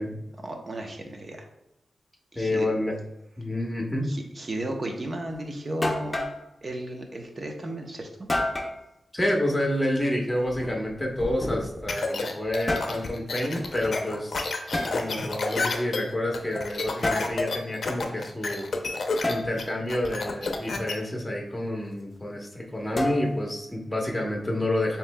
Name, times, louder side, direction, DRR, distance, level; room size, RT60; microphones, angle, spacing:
voice 1, 0.4-1.5 2.3-2.7 4.1-6.3 6.6-8.3 14.6-15.0, right 1 dB, 40° right, 3 dB, 0.9 m, -34 dB
voice 2, 2.4-2.9 3.4-4.1 9.1-14.5 14.9-18.7 19.3-25.0, left 1 dB, 10° left, 0 dB, 1.1 m, -28 dB
sound 1, 5.3-5.4 5.8-6.4 8.3-8.8 10.5-11.9 12.5-13.0 14.7-14.9 17.0-17.3 19.2-19.5 23.0-23.5, left 1 dB, 25° left, 0.7 m, -29 dB
sound 2, 11.9-20.9, left 3 dB, 65° left, 0.6 m, -30 dB
7.0 x 3.1 x 2.3 m, 0.88 s
cardioid pair, 70°, 0 cm